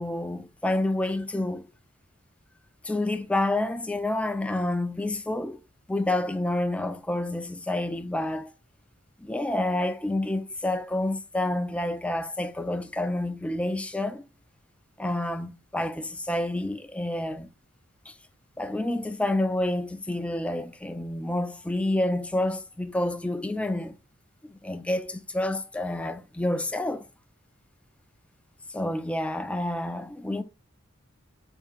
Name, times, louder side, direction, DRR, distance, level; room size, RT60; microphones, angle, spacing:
voice 1, 0.0-1.7 2.8-5.6 5.9-8.5 9.2-14.2 15.0-17.5 18.1-18.2 18.6-23.9 24.5-27.1 28.7-30.4, left 1 dB, 5° left, 0.3 m, -28 dB
3.5 x 2.5 x 4.4 m
head